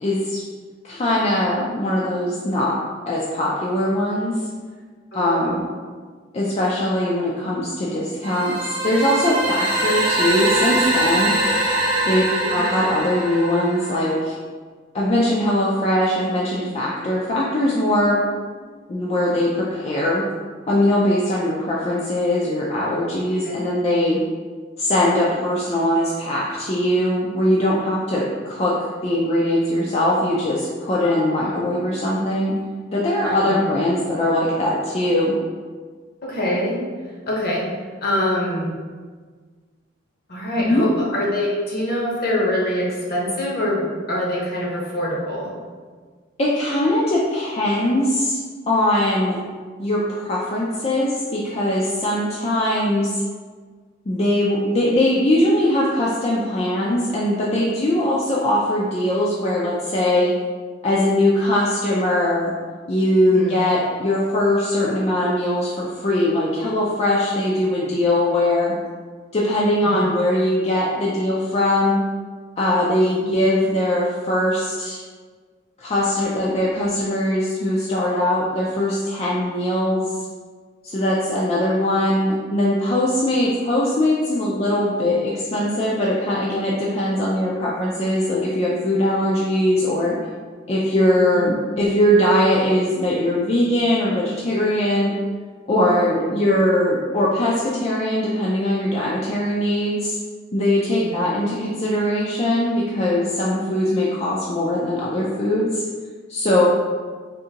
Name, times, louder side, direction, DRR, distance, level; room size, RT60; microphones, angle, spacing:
voice 1, 0.0-0.4 0.8-2.7 3.1-4.4 5.1-5.7 6.3-11.3 12.0-14.4 14.9-18.2 18.9-20.2 20.7-24.2 24.8-28.7 29.0-32.5 32.9-35.3 40.6-40.8 46.4-48.4 48.7-49.4 49.8-53.2 54.1-60.3 60.8-62.5 62.9-68.7 69.3-72.0 72.6-75.0 75.8-80.1 80.8-90.1 90.7-95.1 95.7-100.2 100.5-105.8 106.3-106.6, left 1 dB, 35° left, -6 dB, 0.4 m, -21 dB
voice 2, 5.1-5.6 12.2-12.6 23.4-23.6 31.0-31.6 33.2-33.6 36.2-36.8 37.3-37.7 38.0-38.7 40.3-45.5 63.3-63.6 69.8-70.1 73.2-73.4 91.3-91.5 101.0-101.2, left 1 dB, 55° left, -4 dB, 0.9 m, -25 dB
sound 1, 8.2-14.2, right 1 dB, 50° right, 0.9 m, -22 dB
3.7 x 2.6 x 2.8 m, 1.5 s
head